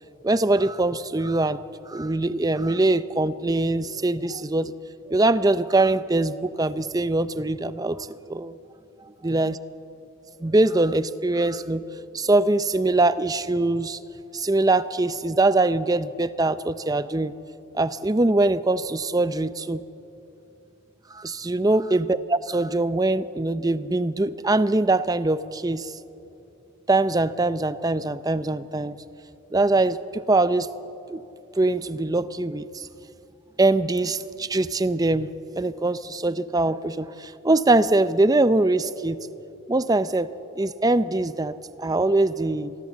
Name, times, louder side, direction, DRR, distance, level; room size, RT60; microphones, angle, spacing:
voice 1, 0.2-1.6 1.9-4.7 5.1-8.5 9.2-9.5 10.4-11.8 12.1-14.0 14.3-17.3 17.7-19.8 21.1-25.9 26.9-29.0 29.5-30.7 31.1-31.2 31.6-32.9 33.6-35.3 35.6-39.2 39.7-40.3 40.6-42.8, right 2 dB, 15° right, 14 dB, 0.5 m, -22 dB
26.0 x 19.5 x 7.4 m, 2.8 s
head